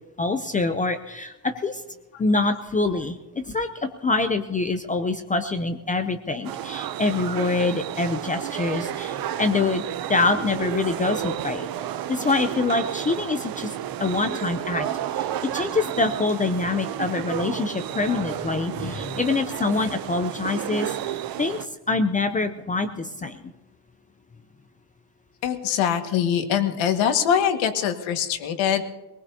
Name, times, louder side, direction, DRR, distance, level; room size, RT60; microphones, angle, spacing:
voice 1, 0.2-1.8 2.2-9.8 10.1-11.7 12.1-14.9 15.1-23.4, left 3 dB, 15° left, 7 dB, 0.5 m, -25 dB
sound 1, 6.4-21.7, right 11 dB, 50° right, 0.6 m, -31 dB
voice 2, 25.4-28.8, left 8 dB, 75° left, 6 dB, 1.8 m, -23 dB
22.5 x 19.5 x 2.8 m, 1.1 s
cardioid pair, 155°, 47 cm